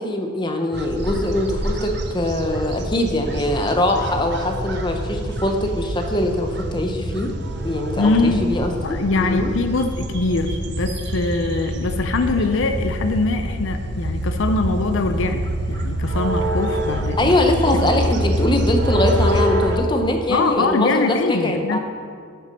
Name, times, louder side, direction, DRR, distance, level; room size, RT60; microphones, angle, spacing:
voice 1, 0.0-7.3 7.6-8.7 9.2-9.5 17.2-21.8, left 1 dB, 20° left, 4 dB, 0.7 m, -22 dB
sound 1, 0.7-19.8, right 1 dB, 55° right, 0.7 m, -26 dB
voice 2, 8.0-8.4 8.8-15.4 15.7-17.4 20.3-21.8, left 3 dB, 65° left, 7 dB, 0.5 m, -22 dB
7.1 x 6.0 x 6.4 m, 2.2 s
head